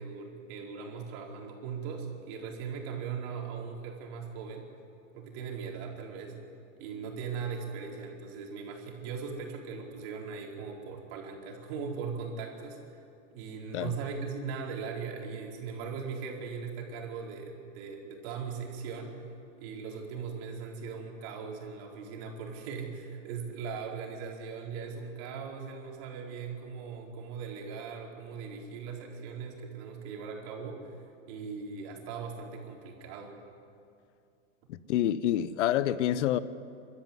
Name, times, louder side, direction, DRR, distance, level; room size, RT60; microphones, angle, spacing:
voice 1, 0.0-4.7 5.1-6.4 6.8-13.0 13.3-19.1 19.6-30.8 31.3-33.3, right 5 dB, 50° right, 4.5 m, -39 dB
voice 2, 34.7-36.4, left 11 dB, 65° left, 1.0 m, -27 dB
24.0 x 13.0 x 9.7 m
hypercardioid pair, 125°, 39 cm